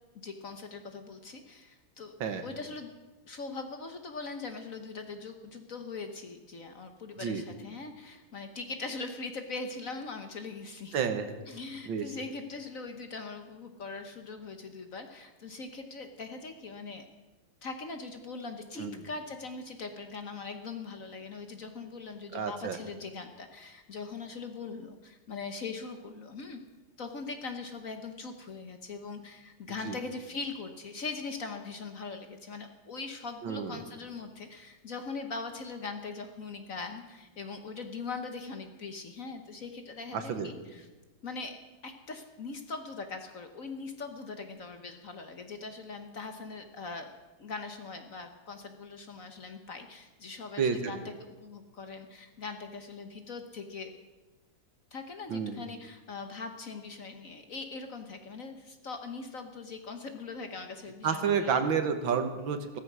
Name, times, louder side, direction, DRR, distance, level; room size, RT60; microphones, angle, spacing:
voice 1, 0.1-2.1 2.4-2.9 3.3-11.0 11.5-17.1 17.6-26.6 27.0-40.9 41.2-41.6 41.8-47.1 47.4-53.9 54.9-61.6, left 4 dB, 50° left, 6 dB, 1.3 m, -41 dB
voice 2, 10.9-11.3 11.9-12.1 18.8-19.0 22.3-22.8 29.9-30.0 33.4-33.8 40.1-40.5 50.6-50.9 55.3-55.6 61.0-62.8, right 6 dB, 70° right, 8 dB, 2.0 m, -30 dB
16.0 x 14.0 x 6.2 m, 1.2 s
omnidirectional pair, 2.2 m